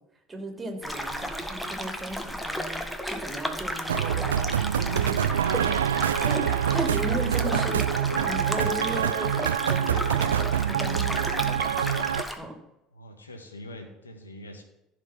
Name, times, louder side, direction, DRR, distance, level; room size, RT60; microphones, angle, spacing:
voice 1, 0.3-4.4 4.8-5.8 6.2-12.0 12.4-12.6, right 1 dB, 15° right, 3 dB, 3.2 m, -36 dB
sound 1, 0.8-12.4, equal, 5° left, 1.6 m, -33 dB
sound 2, 3.9-12.2, right 9 dB, 80° right, 0.3 m, -26 dB
voice 2, 12.9-14.6, left 1 dB, 85° left, 5 dB, 1.7 m, -43 dB
15.0 x 5.2 x 6.1 m, 0.86 s
figure-of-eight pair, 65°, 0 cm